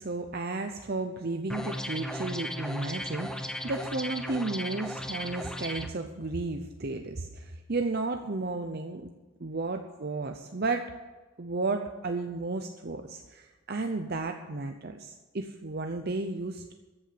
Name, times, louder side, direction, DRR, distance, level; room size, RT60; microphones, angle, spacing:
voice 1, 0.0-9.1 9.4-10.9 11.4-16.7, right 3 dB, 50° right, 5 dB, 0.8 m, -33 dB
sound 1, 1.5-5.9, equal, 5° left, 0.7 m, -36 dB
14.0 x 7.9 x 8.5 m, 1.2 s
head